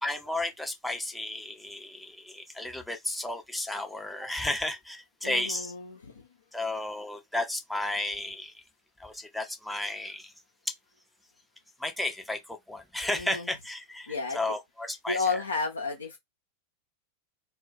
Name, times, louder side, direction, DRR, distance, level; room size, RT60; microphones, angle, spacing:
voice 1, 0.0-5.7 6.5-8.5 9.0-10.3 11.8-15.4, left 1 dB, ahead, 0.7 m, -33 dB
voice 2, 5.2-6.1 13.2-13.5 14.1-14.4 15.1-16.2, left 4 dB, 75° left, 0.5 m, -32 dB
2.3 x 2.1 x 3.8 m
figure-of-eight pair, 90°, 0 cm